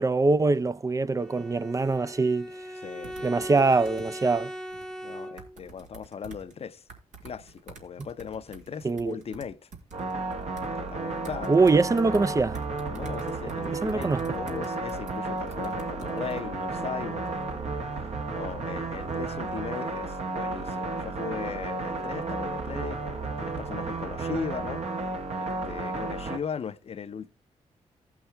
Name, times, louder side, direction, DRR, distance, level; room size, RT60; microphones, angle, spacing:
voice 1, 0.0-2.5 3.2-4.5 8.8-9.2 11.5-12.6 13.8-14.2, right 3 dB, 25° right, 0.5 m, -23 dB
Bowed string instrument, 1.2-5.7, equal, 5° left, 0.9 m, -40 dB
voice 2, 2.8-3.5 5.0-6.8 7.2-9.7 10.8-11.5 12.9-24.8 25.4-27.3, left 7 dB, 55° left, 0.7 m, -38 dB
sound 1, 3.0-4.1 4.7-4.9 5.4-6.5 6.9-10.7 11.2-12.2 12.5-16.4, right 5 dB, 75° right, 2.0 m, -47 dB
sound 2, 9.9-26.4, right 3 dB, 60° right, 1.4 m, -33 dB
15.5 x 5.8 x 3.3 m
cardioid pair, 65°, 13 cm